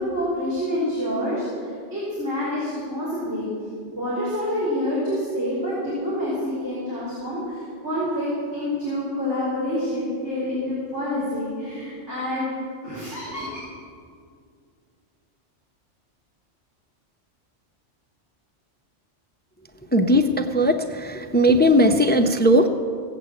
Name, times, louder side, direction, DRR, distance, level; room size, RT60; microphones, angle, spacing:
voice 1, 0.0-3.5 3.9-12.5 12.8-13.5, left 1 dB, 70° right, -9 dB, 4.6 m, -27 dB
voice 2, 19.9-22.7, equal, 15° left, 6 dB, 0.4 m, -18 dB
17.0 x 8.3 x 7.6 m, 2.2 s
omnidirectional pair, 1.2 m